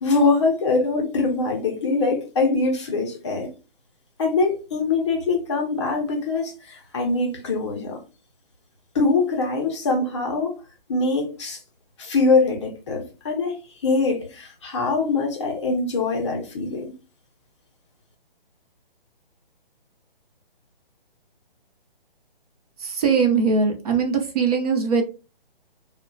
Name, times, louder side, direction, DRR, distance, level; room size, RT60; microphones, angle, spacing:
voice 1, 0.0-3.5 4.2-8.0 8.9-10.5 10.9-11.6 12.0-13.6 13.8-16.9, left 3 dB, 30° left, 0.5 m, -23 dB
voice 2, 22.8-25.0, right 5 dB, 40° right, 0.5 m, -21 dB
2.7 x 2.1 x 2.5 m
hypercardioid pair, 150°, 29 cm